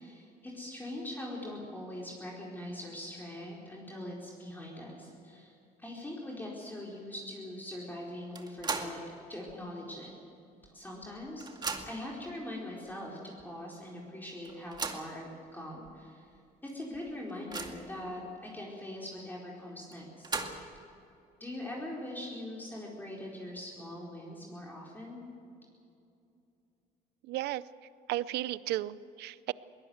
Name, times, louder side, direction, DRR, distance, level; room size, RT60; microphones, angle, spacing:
voice 1, 0.0-5.5 5.8-9.0 9.3-10.1 10.6-11.5 11.9-16.3 16.6-20.3 21.4-25.2, left 1 dB, 10° left, -4 dB, 4.5 m, -42 dB
sound 1, 8.3-9.1 9.5-9.6 10.6-10.7 11.0-12.1 12.9-13.0 13.4-13.5 14.4-15.2 15.9-16.0 16.3-16.4 16.9-18.0 19.9-20.8, right 4 dB, 25° right, 2.1 m, -38 dB
voice 2, 27.2-27.6 28.1-29.5, right 15 dB, 75° right, 18 dB, 0.6 m, -34 dB
22.0 x 18.5 x 8.0 m, 2.6 s
cardioid pair, 110°, 17 cm